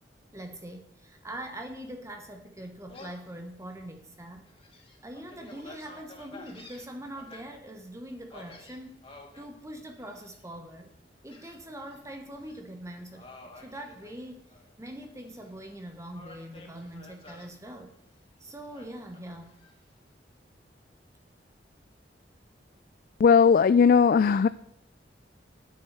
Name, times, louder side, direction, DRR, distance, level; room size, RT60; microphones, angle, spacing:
voice 1, 0.3-4.4 5.0-9.0 9.4-10.9 11.2-14.4 14.8-17.9 18.4-19.5, right 1 dB, 15° right, 5 dB, 1.0 m, -43 dB
Gull seagull, 2.9-3.3 3.8-3.9 4.5-7.4 8.3-9.5 10.0-10.4 11.3-12.0 12.3-12.6 13.1-14.7 15.0-15.8 16.1-17.5 18.7-19.7, left 2 dB, 30° left, 2.5 m, -50 dB
voice 2, 23.2-24.5, left 6 dB, 50° left, 15 dB, 0.3 m, -18 dB
10.0 x 9.2 x 6.7 m, 0.72 s
head